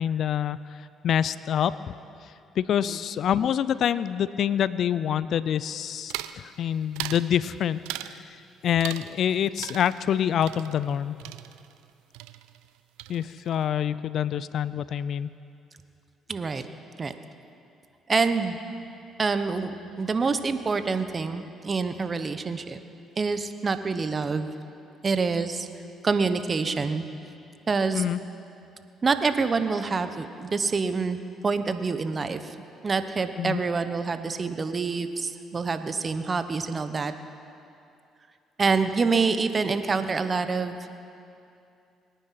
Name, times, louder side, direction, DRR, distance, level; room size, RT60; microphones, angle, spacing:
voice 1, 0.0-1.9 2.2-8.4 8.6-11.2 13.1-15.3 27.9-28.2 33.4-33.6, left 9 dB, 65° left, 17 dB, 0.4 m, -26 dB
sound 1, 6.1-6.4 7.0-7.3 7.9-8.2 8.8-9.3 9.6-11.9 12.1-12.7 13.0-13.5, right 15 dB, 85° right, 0.4 m, -38 dB
voice 2, 16.3-16.6 17.0-17.1 18.1-18.6 19.2-22.8 23.2-24.5 25.0-25.7 26.0-27.0 27.7-28.0 29.0-32.5 32.8-37.1 38.6-40.9, right 4 dB, 35° right, 10 dB, 1.1 m, -26 dB
23.0 x 9.8 x 5.9 m, 2.6 s
supercardioid pair, 65°, 0 cm